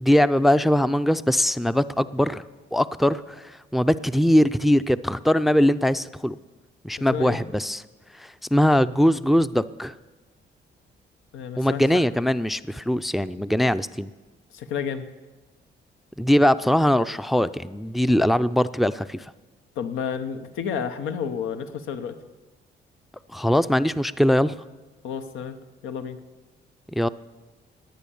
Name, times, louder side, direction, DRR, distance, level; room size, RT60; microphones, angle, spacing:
voice 1, 0.0-2.4 2.7-3.2 3.7-6.3 6.8-7.8 8.2-9.9 11.6-14.1 16.2-19.2 23.3-24.6 27.0-27.1, equal, ahead, 14 dB, 0.4 m, -21 dB
voice 2, 11.3-12.1 14.5-15.1 19.8-22.2 25.0-25.5 25.8-26.2, left 7 dB, 90° left, 8 dB, 1.0 m, -31 dB
19.0 x 9.0 x 7.0 m, 1.2 s
cardioid pair, 90°, 20 cm